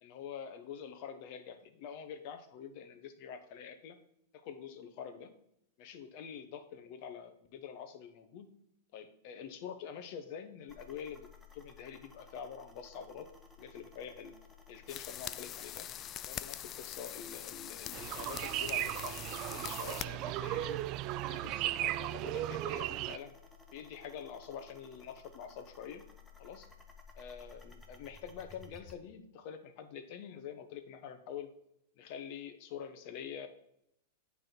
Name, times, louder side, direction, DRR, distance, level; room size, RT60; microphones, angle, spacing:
voice 1, 0.0-4.0 4.4-5.3 5.8-8.5 8.9-11.3 11.5-13.3 13.6-14.3 14.7-15.9 16.2-20.8 21.3-23.3 23.7-26.0 26.4-26.7 27.1-31.5 32.0-33.5, left 7 dB, 55° left, 9 dB, 1.1 m, -46 dB
sound 1, 10.7-29.0, left 5 dB, 5° left, 1.1 m, -57 dB
sound 2, 14.9-20.1, left 11 dB, 35° left, 0.3 m, -43 dB
sound 3, 17.9-23.2, right 14 dB, 45° right, 0.3 m, -36 dB
8.7 x 3.6 x 6.0 m, 0.76 s
hypercardioid pair, 110°, 0 cm